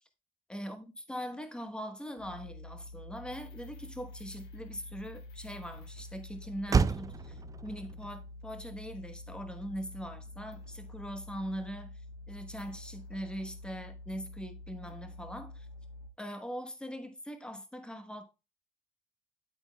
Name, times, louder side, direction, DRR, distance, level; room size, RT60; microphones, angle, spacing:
voice 1, 0.5-11.9 12.3-15.7 16.2-18.2, equal, 5° left, 1.1 m, -41 dB
sound 1, 2.2-16.1, left 2 dB, 75° left, 1.3 m, -48 dB
Motor vehicle (road), 2.5-11.3, right 5 dB, 20° right, 0.3 m, -37 dB
8.6 x 8.0 x 2.3 m
cardioid pair, 110°, 17 cm